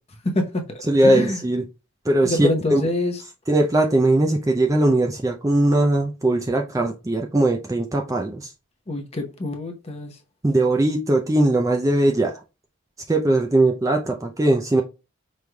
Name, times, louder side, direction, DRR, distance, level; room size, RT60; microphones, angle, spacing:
voice 1, 0.2-1.4 2.2-3.2 8.9-10.2, left 1 dB, 30° left, 0.8 m, -26 dB
voice 2, 0.9-1.6 2.1-2.8 3.5-8.5 10.4-12.4 13.1-14.8, right 1 dB, 15° right, 0.4 m, -20 dB
5.3 x 3.1 x 2.2 m
head